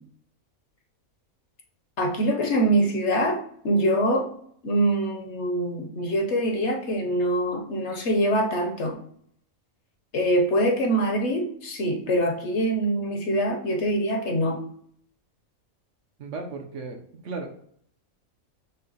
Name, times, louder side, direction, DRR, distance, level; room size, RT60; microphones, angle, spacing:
voice 1, 2.0-3.4 3.6-4.3 4.6-8.9 10.1-14.6, right 1 dB, 60° left, 3 dB, 1.0 m, -24 dB
voice 2, 16.2-17.7, right 3 dB, 65° right, 3 dB, 1.0 m, -36 dB
5.7 x 2.2 x 3.9 m, 0.64 s
omnidirectional pair, 1.5 m